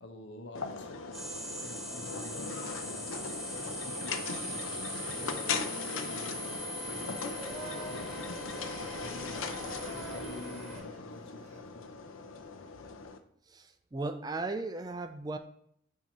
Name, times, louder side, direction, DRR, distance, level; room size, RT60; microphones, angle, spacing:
voice 1, 0.0-8.2 8.8-9.4 9.8-11.9, left 2 dB, 65° left, 4 dB, 1.0 m, -50 dB
sound 1, 0.6-13.2, left 4 dB, 90° left, 0.6 m, -39 dB
sound 2, 1.1-10.8, right 1 dB, ahead, 1.7 m, -41 dB
Singing, 5.0-11.6, right 2 dB, 35° right, 1.0 m, -49 dB
voice 2, 13.5-15.4, right 3 dB, 20° right, 7 dB, 0.3 m, -36 dB
7.4 x 2.8 x 5.3 m, 0.66 s
head